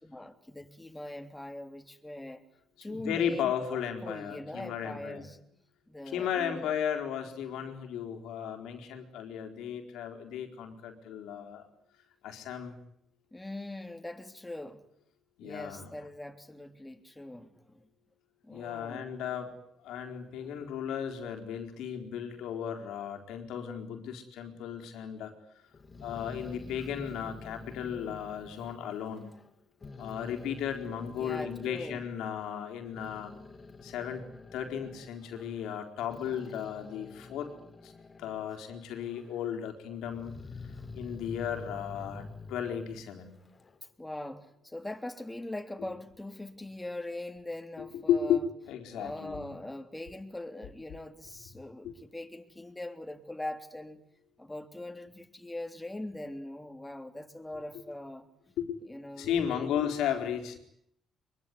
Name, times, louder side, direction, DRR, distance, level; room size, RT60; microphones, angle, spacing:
voice 1, 0.0-2.4 2.8-5.4 5.9-6.7 13.3-14.8 15.4-17.9 18.4-19.1 20.4-20.5 26.8-26.9 31.1-32.0 40.7-40.9 44.0-48.4 48.9-54.0 54.4-58.3 58.9-59.8, left 1 dB, 10° left, 3.4 m, -42 dB
voice 2, 2.8-5.3 6.1-11.7 12.2-12.7 15.4-15.9 18.5-19.6 19.8-25.4 26.0-29.3 30.0-33.3 33.8-37.6 37.8-37.9 38.2-40.3 40.9-43.4 47.8-49.6 51.8-51.9 58.6-58.8 59.2-60.6, left 8 dB, 90° left, 4.3 m, -35 dB
Growling, 25.7-29.5 29.8-32.1 32.7-38.5 38.9-39.6 40.0-43.8, left 3 dB, 35° left, 3.2 m, -48 dB
24.0 x 23.0 x 9.8 m
cardioid pair, 90°, 0 cm